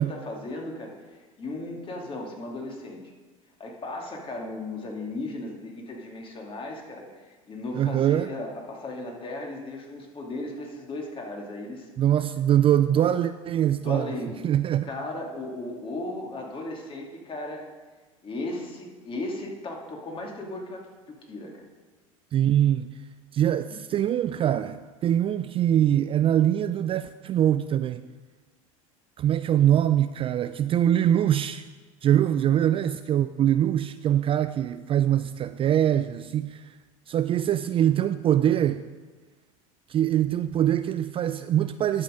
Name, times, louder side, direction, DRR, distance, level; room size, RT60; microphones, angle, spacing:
voice 1, 0.0-3.0 3.6-11.9 12.9-13.0 13.8-14.3 14.8-17.7 18.2-21.6, left 2 dB, 30° left, 2.3 m, -36 dB
voice 2, 7.7-8.3 12.0-14.1 14.4-14.9 22.3-22.9 23.3-28.0 29.2-31.7 32.0-36.6 37.1-38.8 39.9-42.0, right 11 dB, 30° right, 0.3 m, -23 dB
11.5 x 6.3 x 5.0 m
hypercardioid pair, 90°, 18 cm